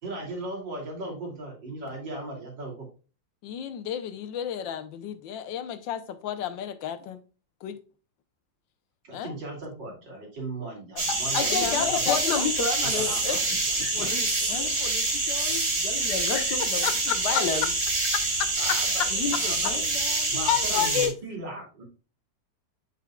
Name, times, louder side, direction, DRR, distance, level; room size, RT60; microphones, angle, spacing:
voice 1, 0.0-2.9 9.0-11.9 12.8-13.5 18.6-20.0 20.3-21.8, right 2 dB, 75° right, 3.5 m, -37 dB
voice 2, 3.4-7.2 7.6-7.8 9.1-9.3 10.9-11.0 11.5-12.5 14.5-14.7 16.8-17.4 18.4-18.8 19.6-19.7 20.5-21.1, left 10 dB, 85° left, 1.5 m, -31 dB
sound 1, 11.0-21.1, right 2 dB, 35° right, 2.4 m, -26 dB
voice 3, 11.1-13.4 13.7-17.7 19.1-20.5, left 5 dB, 65° left, 1.5 m, -31 dB
8.4 x 6.2 x 2.3 m
omnidirectional pair, 2.0 m